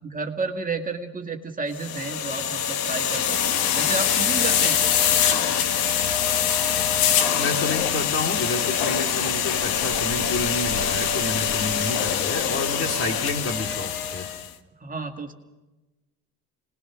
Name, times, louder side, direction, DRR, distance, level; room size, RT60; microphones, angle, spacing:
voice 1, 0.0-3.4 3.8-4.8 14.8-15.3, right 4 dB, 25° right, 3 dB, 2.1 m, -31 dB
sound 1, 1.8-14.5, left 8 dB, 85° left, 1.5 m, -24 dB
voice 2, 7.4-14.3, left 2 dB, 40° left, 3 dB, 2.7 m, -30 dB
26.0 x 20.5 x 6.1 m, 1.1 s
cardioid pair, 95°, 36 cm